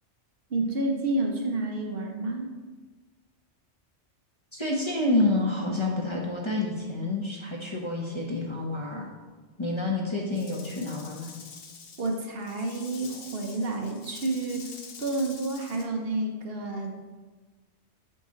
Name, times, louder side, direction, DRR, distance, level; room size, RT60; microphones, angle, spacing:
voice 1, 0.5-2.5 12.0-16.9, right 2 dB, 55° right, 1 dB, 1.0 m, -30 dB
voice 2, 4.5-9.1 9.6-11.3, left 2 dB, 25° left, -2 dB, 0.9 m, -28 dB
Rattle / Rattle (instrument), 10.3-15.9, left 5 dB, 55° left, 0.9 m, -46 dB
7.8 x 5.2 x 3.8 m, 1.3 s
omnidirectional pair, 1.2 m